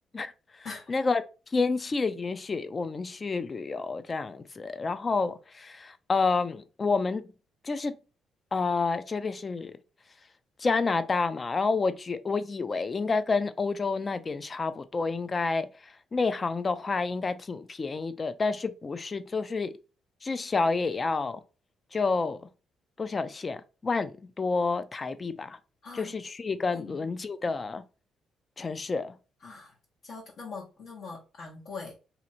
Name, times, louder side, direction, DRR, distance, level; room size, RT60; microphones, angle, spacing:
voice 1, 0.9-1.2 1.5-7.2 7.6-8.0 8.5-9.7 10.6-15.7 16.1-19.8 20.2-21.4 21.9-22.4 23.0-25.6 25.9-27.8 28.6-29.1, left 4 dB, 35° left, 0.4 m, -29 dB
voice 2, 25.8-26.1 26.7-27.1 29.4-29.7 30.0-31.9, left 4 dB, 65° left, 1.2 m, -42 dB
2.8 x 2.5 x 4.2 m
cardioid pair, 90°, 0 cm